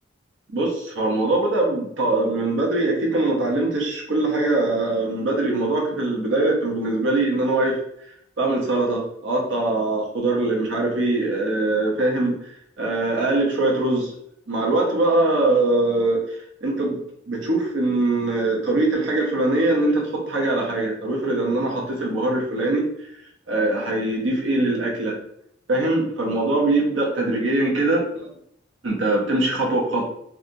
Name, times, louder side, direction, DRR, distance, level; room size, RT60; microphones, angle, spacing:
voice 1, 0.5-7.8 8.4-12.4 12.8-14.1 14.5-17.0 17.3-22.9 23.5-25.2 25.7-28.1 28.8-30.1, right 2 dB, 85° right, -1 dB, 0.8 m, -22 dB
2.7 x 2.3 x 2.6 m, 0.71 s
head